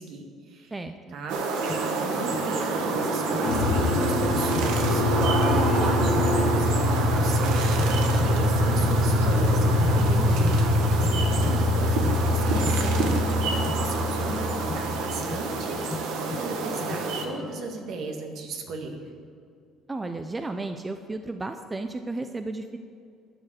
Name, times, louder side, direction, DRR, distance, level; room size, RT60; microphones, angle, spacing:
voice 1, 0.0-0.7 1.1-1.4 1.8-9.7 10.9-19.0, right 3 dB, 60° right, 3 dB, 1.8 m, -37 dB
voice 2, 0.7-1.2 10.0-10.6 19.9-22.8, right 2 dB, 15° right, 8 dB, 0.5 m, -34 dB
sound 1, 1.3-17.2, right 4 dB, 85° right, 1.5 m, -28 dB
sound 2, 1.7-17.6, left 4 dB, 30° left, 0.9 m, -40 dB
sound 3, 3.4-15.6, left 2 dB, 50° left, 1.8 m, -24 dB
12.5 x 6.5 x 8.0 m, 2.4 s
cardioid pair, 120°, 0 cm